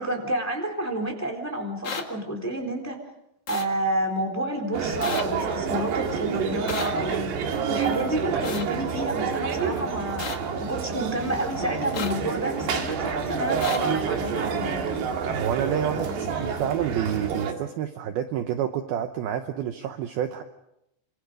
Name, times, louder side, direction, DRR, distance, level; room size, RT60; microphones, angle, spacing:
voice 1, 0.0-3.0 3.5-7.3 7.7-10.2 10.6-14.8, right 1 dB, 5° left, 3 dB, 2.9 m, -29 dB
sound 1, 1.8-2.0 3.5-3.6 5.0-5.2 6.7-6.9 8.4-8.6 10.2-10.4 11.9-12.1 13.6-13.8, left 6 dB, 55° left, 1.8 m, -32 dB
sound 2, 4.7-17.5, right 6 dB, 60° right, 3.9 m, -28 dB
voice 2, 15.2-20.4, right 9 dB, 80° right, 7 dB, 2.2 m, -29 dB
27.0 x 26.5 x 5.2 m, 0.82 s
omnidirectional pair, 5.8 m